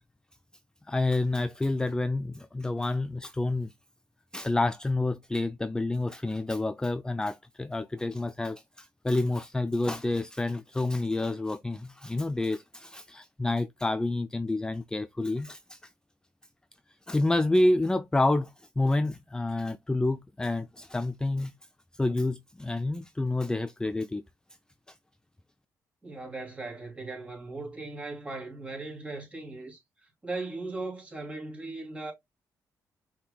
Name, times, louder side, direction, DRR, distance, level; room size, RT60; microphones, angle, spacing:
voice 1, 0.9-3.7 4.3-15.9 17.1-21.5 21.9-24.2, left 2 dB, 10° left, 0.4 m, -28 dB
voice 2, 26.0-32.1, right 3 dB, 20° right, 2.8 m, -38 dB
5.7 x 3.7 x 2.2 m
cardioid pair, 75°, 7 cm